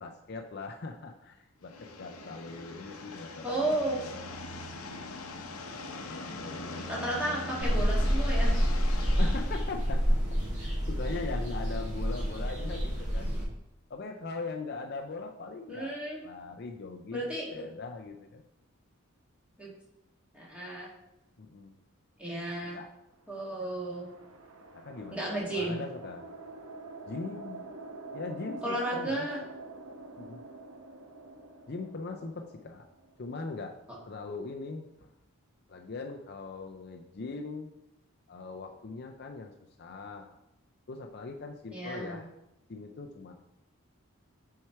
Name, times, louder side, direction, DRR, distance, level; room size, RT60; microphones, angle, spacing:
voice 1, 0.0-4.3 4.7-5.1 6.1-6.8 9.2-13.3 13.9-16.0 16.2-18.4 21.4-21.7 22.6-22.9 24.7-26.3 27.1-27.6 28.1-29.3 30.2-30.4 31.7-32.9 33.2-33.8 34.1-35.1 35.7-37.7 38.3-40.3 40.9-42.3 42.7-43.3, left 3 dB, 50° left, 3 dB, 0.5 m, -41 dB
sound 1, 1.6-9.7, left 2 dB, 85° left, 0.8 m, -41 dB
voice 2, 3.4-4.0 6.9-8.6 15.7-16.2 17.1-17.6 19.6-19.7 20.3-20.9 22.2-22.8 23.3-24.1 25.1-25.8 28.6-29.4 33.9-34.0 41.7-42.2, right 1 dB, 5° right, -5 dB, 2.0 m, -33 dB
sound 2, 7.6-13.4, equal, 35° right, 2.1 m, -28 dB
sound 3, 23.2-33.6, right 3 dB, 75° right, 1.0 m, -47 dB
7.4 x 4.6 x 4.6 m, 0.87 s
head